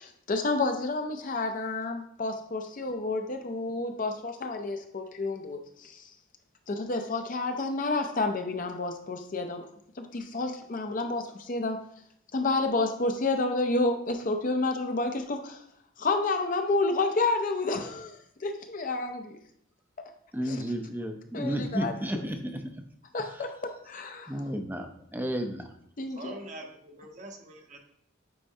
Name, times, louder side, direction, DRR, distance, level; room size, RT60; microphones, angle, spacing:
voice 1, 0.0-6.0 6.7-9.7 10.0-11.8 12.3-15.6 16.0-19.4 20.4-20.6 21.3-22.3 23.1-24.3 26.0-26.4, left 3 dB, 40° left, 5 dB, 0.5 m, -30 dB
voice 2, 20.3-22.6 24.3-24.9 25.1-25.7, equal, 10° right, 5 dB, 0.5 m, -32 dB
voice 3, 26.1-27.8, right 1 dB, 35° right, 2 dB, 0.9 m, -44 dB
8.6 x 4.4 x 2.7 m, 0.69 s
head